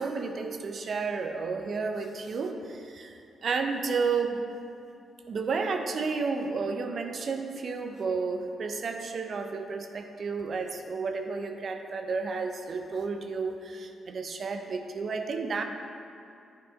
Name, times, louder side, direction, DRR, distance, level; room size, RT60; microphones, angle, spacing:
voice 1, 0.0-4.4 5.3-15.6, right 4 dB, 55° right, 5 dB, 0.7 m, -32 dB
11.0 x 4.6 x 4.1 m, 2.5 s
hypercardioid pair, 40°, 0 cm